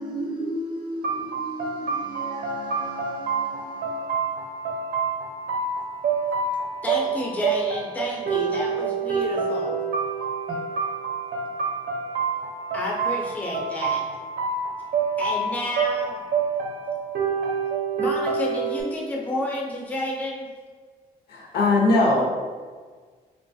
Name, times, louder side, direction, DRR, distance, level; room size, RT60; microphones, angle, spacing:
voice 1, 0.0-5.6 6.5-6.6 8.1-8.6 10.5-10.6, right 1 dB, 30° right, -2 dB, 0.6 m, -36 dB
sound 1, 1.0-18.8, right 5 dB, 90° right, 0.5 m, -27 dB
voice 2, 6.8-9.8 12.7-14.0 15.2-16.2 18.0-20.5, left 1 dB, 10° left, -2 dB, 0.4 m, -30 dB
voice 3, 21.3-22.3, left 2 dB, 75° left, -2 dB, 0.7 m, -20 dB
3.1 x 2.3 x 2.6 m, 1.5 s
cardioid pair, 130°, 16 cm